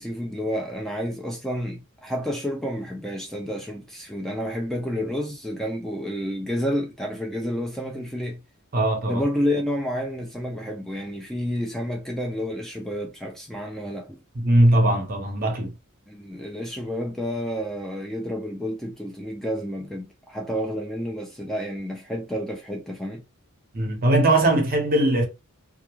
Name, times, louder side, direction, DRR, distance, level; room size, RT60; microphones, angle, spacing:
voice 1, 0.0-8.4 9.1-14.2 16.1-23.2, equal, ahead, 0.3 m, -30 dB
voice 2, 8.7-9.2 14.3-15.7 23.7-25.3, right 1 dB, 40° right, 0.8 m, -20 dB
2.3 x 2.3 x 3.0 m
head